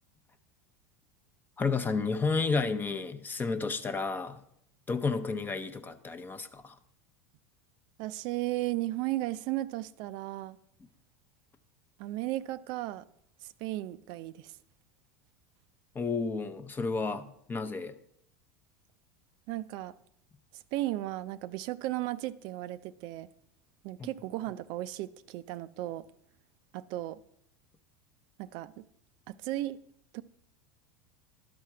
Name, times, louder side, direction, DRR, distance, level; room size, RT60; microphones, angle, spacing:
voice 1, 1.6-4.4 4.9-6.8 15.9-18.0 24.0-24.1, left 4 dB, 20° left, 10 dB, 0.7 m, -31 dB
voice 2, 8.0-10.6 12.0-13.1 13.4-14.6 19.5-19.9 20.5-23.3 23.8-26.0 26.7-27.2 28.4-28.8 29.3-29.8 30.1-30.2, right 16 dB, 55° right, 14 dB, 0.4 m, -35 dB
12.0 x 4.3 x 4.7 m, 0.74 s
hypercardioid pair, 100°, 9 cm